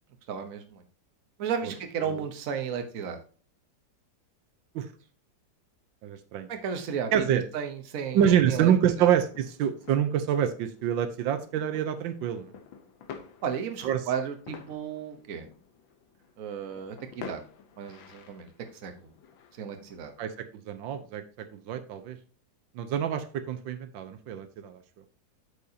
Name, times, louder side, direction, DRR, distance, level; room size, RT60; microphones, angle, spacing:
voice 1, 0.3-0.8 1.4-3.2 6.5-8.2 8.5-8.7 9.0-9.1 13.4-15.5 16.4-17.4 17.8-18.5 18.8-19.1 19.5-20.1, right 7 dB, 50° right, 6 dB, 1.3 m, -34 dB
voice 2, 6.0-6.5 7.1-7.4 8.1-12.5 13.8-14.0 20.2-21.2 21.5-22.2 22.7-24.8, right 9 dB, 85° right, 10 dB, 1.5 m, -26 dB
sound 1, 9.3-20.4, left 7 dB, 90° left, 1.7 m, -49 dB
8.4 x 6.6 x 2.8 m, 0.39 s
omnidirectional pair, 2.0 m